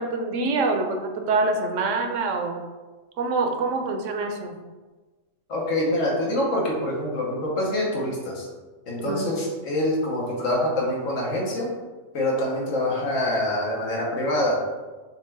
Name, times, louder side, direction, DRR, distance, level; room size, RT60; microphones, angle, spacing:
voice 1, 0.0-2.6 3.2-4.6 9.0-9.3, right 3 dB, 75° right, 4 dB, 1.0 m, -25 dB
voice 2, 5.5-8.5 8.9-11.7 12.1-14.6, left 1 dB, 85° left, -3 dB, 1.5 m, -25 dB
6.3 x 2.4 x 3.3 m, 1.3 s
omnidirectional pair, 1.3 m